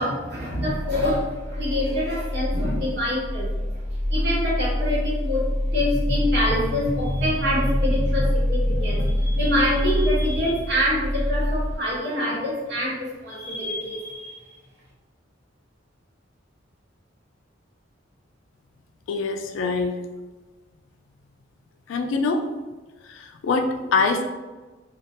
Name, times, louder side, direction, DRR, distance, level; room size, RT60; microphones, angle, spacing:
voice 1, 0.0-14.5, left 1 dB, 60° right, -7 dB, 1.0 m, -26 dB
sound 1, 0.7-11.8, left 1 dB, 35° left, 0.6 m, -26 dB
voice 2, 19.1-20.0 21.9-22.4 23.0-24.2, left 4 dB, 85° left, 4 dB, 0.3 m, -24 dB
2.3 x 2.1 x 2.8 m, 1.2 s
head